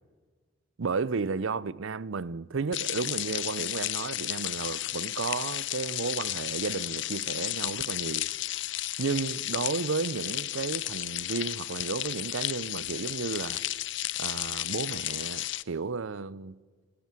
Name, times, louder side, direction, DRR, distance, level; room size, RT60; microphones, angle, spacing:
voice 1, 0.8-8.3 9.0-13.6 14.2-16.6, right 4 dB, 75° right, 0.6 m, -33 dB
sound 1, 2.7-15.6, left 15 dB, 65° left, 0.6 m, -33 dB
30.0 x 16.5 x 7.6 m
head